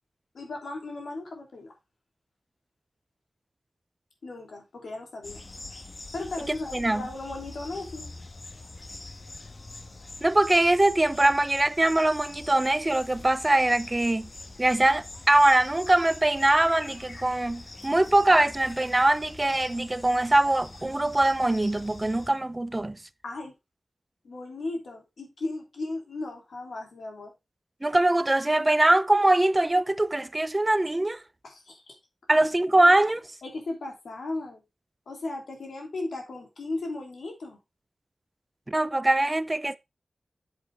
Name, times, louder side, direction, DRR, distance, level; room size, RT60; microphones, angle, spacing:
voice 1, 0.3-1.7 4.2-5.4 6.1-8.1 23.2-23.5 24.2-27.3 31.4-31.9 32.3-32.4 32.7-32.9 33.4-34.6 35.1-37.6, left 2 dB, 85° left, 3.1 m, -36 dB
sound 1, 5.2-22.3, left 2 dB, 50° left, 1.4 m, -44 dB
voice 2, 6.7-7.0 10.2-14.3 14.6-23.0 27.8-31.2 32.3-33.2 38.7-39.8, right 1 dB, 30° right, 0.6 m, -22 dB
8.1 x 7.6 x 3.4 m
cardioid pair, 40°, 0 cm